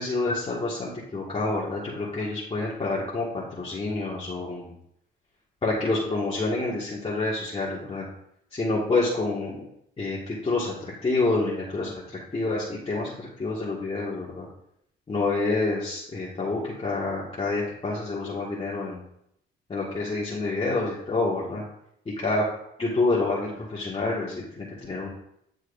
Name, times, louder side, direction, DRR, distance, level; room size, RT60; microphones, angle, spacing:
voice 1, 0.0-4.7 5.6-8.1 8.5-9.5 10.0-14.5 15.1-19.0 19.7-21.6 22.2-22.5 22.8-25.1, left 3 dB, 30° left, -6 dB, 2.0 m, -28 dB
10.5 x 6.3 x 2.7 m, 0.75 s
cardioid pair, 90°, 20 cm